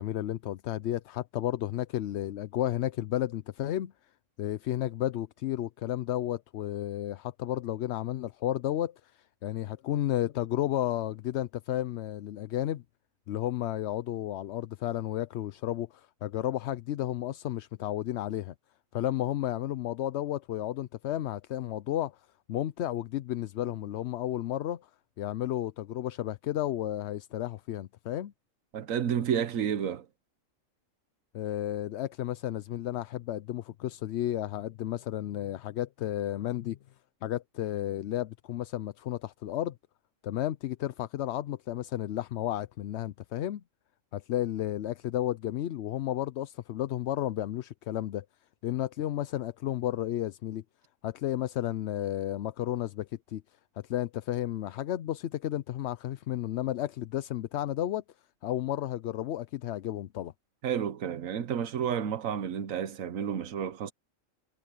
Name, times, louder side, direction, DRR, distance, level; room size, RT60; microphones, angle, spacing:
voice 1, 0.0-3.9 4.4-12.8 13.3-18.5 18.9-22.2 22.5-24.9 25.2-28.3 31.3-36.8 37.2-39.8 40.2-43.6 44.1-48.2 48.6-50.6 51.0-53.4 53.8-58.0 58.4-60.3, left 12 dB, 65° left, 0.8 m, -32 dB
voice 2, 28.7-30.1 60.6-63.9, right 8 dB, 85° right, 1.3 m, -31 dB
omnidirectional pair, 1.3 m